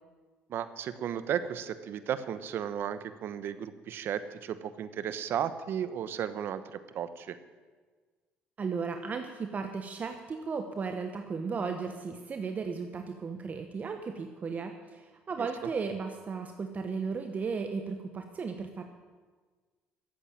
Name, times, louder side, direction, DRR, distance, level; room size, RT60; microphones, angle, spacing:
voice 1, 0.5-7.4 15.4-15.5, right 9 dB, 60° right, 13 dB, 1.0 m, -34 dB
voice 2, 8.6-18.8, right 5 dB, 40° right, 5 dB, 1.1 m, -35 dB
12.5 x 8.3 x 8.9 m, 1.4 s
supercardioid pair, 85°, 4 cm